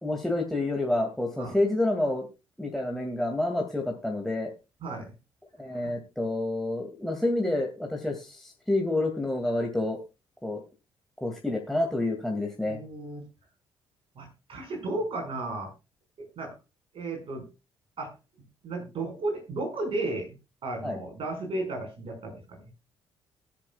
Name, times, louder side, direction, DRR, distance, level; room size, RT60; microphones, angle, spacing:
voice 1, 0.0-2.3 2.6-4.5 5.6-10.0 10.4-10.6 11.2-12.8 20.8-21.0, left 2 dB, ahead, 1 dB, 2.3 m, -28 dB
voice 2, 4.8-5.1 5.7-5.9 12.7-13.2 14.2-15.7 16.2-16.5 16.9-17.5 18.0-18.1 18.6-20.3 20.6-22.6, right 2 dB, 50° right, 2 dB, 5.2 m, -34 dB
21.5 x 7.4 x 2.3 m, 0.28 s
figure-of-eight pair, 45°, 12 cm